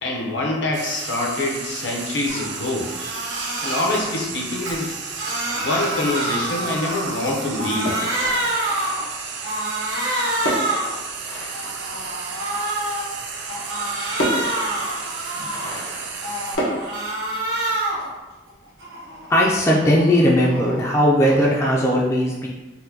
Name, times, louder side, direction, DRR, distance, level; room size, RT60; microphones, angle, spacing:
voice 1, 0.0-2.9 3.6-5.0 5.5-8.0, left 2 dB, 70° left, -1 dB, 0.7 m, -25 dB
Frying (food), 0.7-16.6, right 5 dB, 65° right, 0.4 m, -33 dB
Crying sobbing, 2.3-2.5 2.8-4.0 4.5-7.2 7.5-9.0 9.4-10.9 11.4-13.0 13.4-15.8 16.2-18.1 18.5-20.8, right 1 dB, 80° right, 1.0 m, -27 dB
sound 1, 7.9-9.3 10.4-12.4 13.6-13.7 14.2-16.8, equal, 90° left, 1.0 m, -30 dB
voice 2, 19.3-22.5, equal, 15° left, -4 dB, 0.3 m, -18 dB
4.2 x 2.1 x 2.7 m, 1.2 s
head